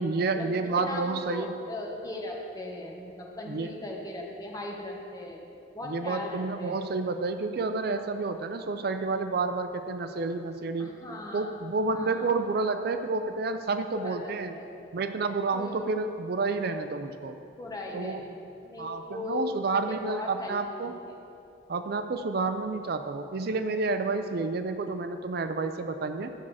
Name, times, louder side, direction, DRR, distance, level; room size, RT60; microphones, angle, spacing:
voice 1, 0.0-1.5 3.5-3.7 5.9-10.9 11.3-14.6 14.9-17.4 17.9-18.2 18.8-20.9 21.7-26.3, right 3 dB, 55° right, 8 dB, 0.4 m, -30 dB
voice 2, 0.8-6.8 10.8-11.5 11.9-12.3 14.0-14.6 15.5-15.9 17.6-18.3 18.6-21.0, left 2 dB, 20° left, -1 dB, 1.1 m, -38 dB
11.0 x 7.0 x 4.8 m, 2.6 s
head